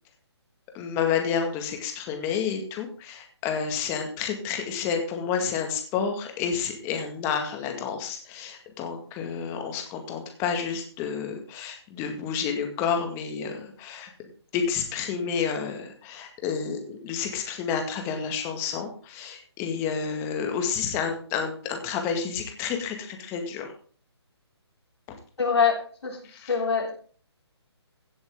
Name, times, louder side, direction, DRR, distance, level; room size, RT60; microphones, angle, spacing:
voice 1, 0.7-14.1 14.5-23.7 26.3-26.5, left 6 dB, 20° left, 4 dB, 1.9 m, -30 dB
voice 2, 25.4-26.2 26.5-26.9, left 6 dB, 75° left, -2 dB, 3.7 m, -24 dB
16.0 x 7.8 x 3.7 m, 0.43 s
hypercardioid pair, 155°, 14 cm